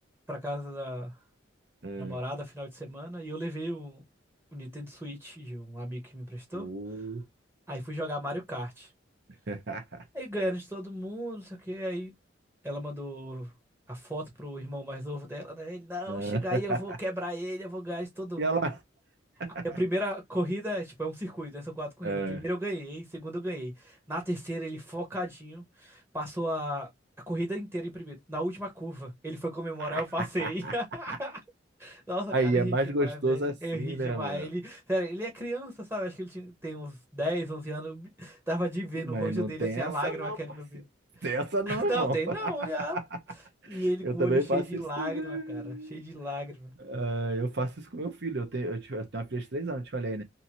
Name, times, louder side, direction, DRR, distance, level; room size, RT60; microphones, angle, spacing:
voice 1, 0.3-1.1 2.0-4.0 4.5-6.7 7.7-8.9 10.1-12.1 12.6-13.5 13.9-18.6 19.8-26.9 27.3-31.4 31.8-40.8 41.2-41.3 41.7-43.0 43.6-46.7, equal, 10° right, 0.9 m, -34 dB
voice 2, 1.8-2.2 6.5-7.2 9.5-10.0 16.1-16.8 18.4-18.8 19.4-19.6 22.0-22.4 29.8-30.0 30.4-30.7 31.1-31.2 32.3-34.5 39.0-40.4 41.2-42.5 43.6-44.6 45.0-46.0 46.8-50.2, right 2 dB, 60° right, 0.8 m, -31 dB
2.7 x 2.6 x 2.8 m
head